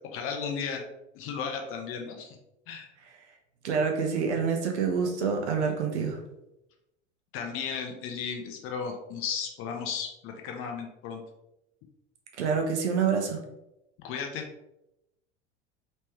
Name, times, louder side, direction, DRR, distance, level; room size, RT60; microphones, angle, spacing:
voice 1, 0.1-0.8 1.1-2.4 2.7-2.9 7.3-11.2 14.0-14.5, left 6 dB, 35° left, 4 dB, 0.7 m, -34 dB
voice 2, 3.6-6.2 12.4-13.4, right 5 dB, 65° right, 2 dB, 0.9 m, -27 dB
3.2 x 3.2 x 3.0 m, 0.88 s
figure-of-eight pair, 75°, 36 cm